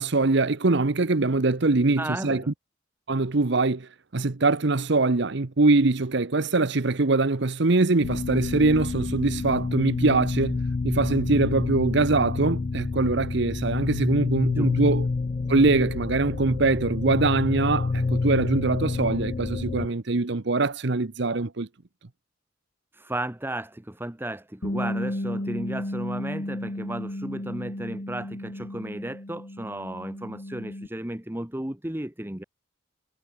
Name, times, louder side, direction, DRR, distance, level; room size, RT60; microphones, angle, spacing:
voice 1, 0.0-2.5 3.1-15.1 15.5-21.7, right 3 dB, 60° right, 0.9 m, -23 dB
voice 2, 2.0-2.5 14.5-14.7 22.9-32.4, right 1 dB, 10° right, 1.1 m, -34 dB
sound 1, 8.0-19.9, left 3 dB, 30° left, 0.3 m, -28 dB
Bass guitar, 24.6-30.9, left 1 dB, 50° left, 2.4 m, -33 dB
head